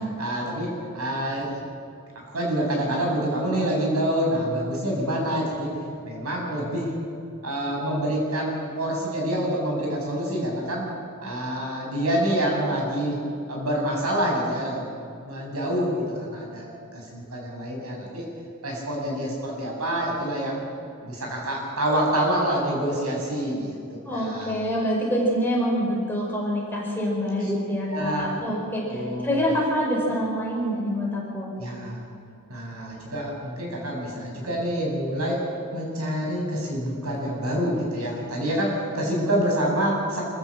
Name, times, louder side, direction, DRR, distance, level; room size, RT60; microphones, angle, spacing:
voice 1, 0.2-1.6 2.3-5.8 6.0-6.9 7.4-10.8 11.2-13.2 13.5-16.0 16.3-18.2 18.6-20.6 21.0-24.5 27.4-27.5 27.9-28.3 28.9-29.4 31.6-32.0 32.5-35.4 35.7-40.2, right 1 dB, 80° right, -1 dB, 7.1 m, -27 dB
voice 2, 24.0-31.5, equal, 10° left, -3 dB, 5.1 m, -26 dB
26.0 x 15.0 x 7.4 m, 2.5 s
head